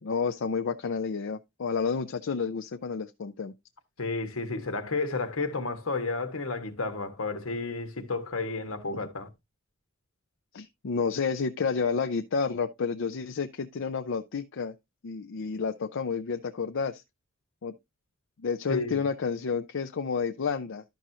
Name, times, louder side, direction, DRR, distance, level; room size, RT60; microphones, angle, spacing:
voice 1, 0.0-3.5 10.5-14.7 15.0-17.0 17.6-17.7 18.4-20.8, left 5 dB, 65° left, 0.5 m, -30 dB
voice 2, 4.0-9.3 18.7-19.0, left 3 dB, 80° left, 1.3 m, -32 dB
11.5 x 6.1 x 2.7 m
head